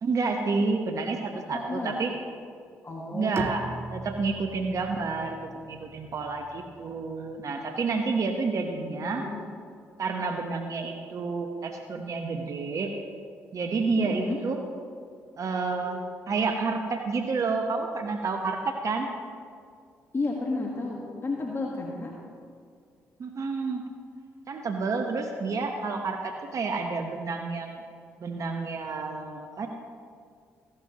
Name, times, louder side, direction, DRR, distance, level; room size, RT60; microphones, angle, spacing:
voice 1, 0.0-2.1 3.1-9.3 10.0-13.0 13.5-14.6 15.4-19.1 23.2-23.8 24.5-27.8 28.2-29.7, right 4 dB, 50° right, 4 dB, 1.0 m, -29 dB
voice 2, 1.5-1.9 2.8-3.5 8.7-9.4 14.0-14.4 20.1-22.1, left 3 dB, 40° left, -1 dB, 1.6 m, -32 dB
Bowed string instrument, 3.4-7.3, right 3 dB, 35° right, 0.6 m, -41 dB
15.0 x 12.0 x 3.0 m, 2.2 s
hypercardioid pair, 50°, 7 cm